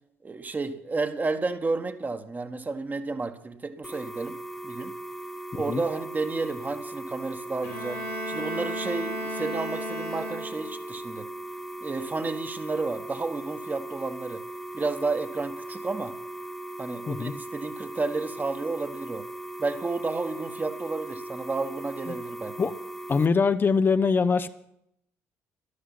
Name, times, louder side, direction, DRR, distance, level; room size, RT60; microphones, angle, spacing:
voice 1, 0.2-4.4 4.6-4.9 5.5-11.3 11.8-14.4 14.7-16.2 16.8-19.3 19.6-22.7, right 3 dB, 25° right, 1.4 m, -31 dB
sound 1, 3.8-23.3, right 1 dB, 5° left, 1.0 m, -39 dB
Bowed string instrument, 7.6-10.8, equal, 80° left, 3.2 m, -34 dB
voice 2, 23.1-24.5, left 5 dB, 30° left, 0.6 m, -23 dB
13.0 x 12.5 x 5.7 m
figure-of-eight pair, 45°, 7 cm